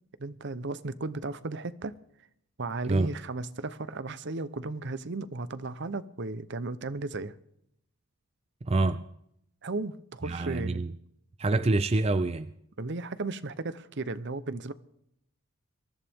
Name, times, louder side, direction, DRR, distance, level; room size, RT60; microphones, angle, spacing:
voice 1, 0.2-2.0 2.6-7.3 9.6-10.8 12.8-14.7, right 3 dB, 55° right, 14 dB, 0.8 m, -35 dB
voice 2, 8.6-9.0 10.2-10.9 11.4-12.5, right 2 dB, 30° right, 11 dB, 0.5 m, -26 dB
23.0 x 14.0 x 3.6 m, 0.73 s
head